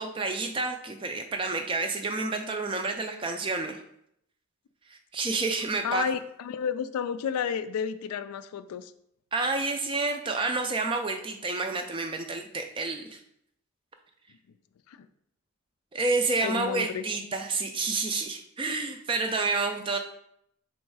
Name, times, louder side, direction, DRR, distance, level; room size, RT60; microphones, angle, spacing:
voice 1, 0.0-3.8 5.1-6.0 9.3-13.2 15.9-20.0, right 3 dB, 25° right, 6 dB, 0.3 m, -29 dB
voice 2, 5.8-8.9 14.9-15.0 16.4-17.0, left 7 dB, 90° left, 12 dB, 0.3 m, -31 dB
3.6 x 3.1 x 4.6 m, 0.73 s
head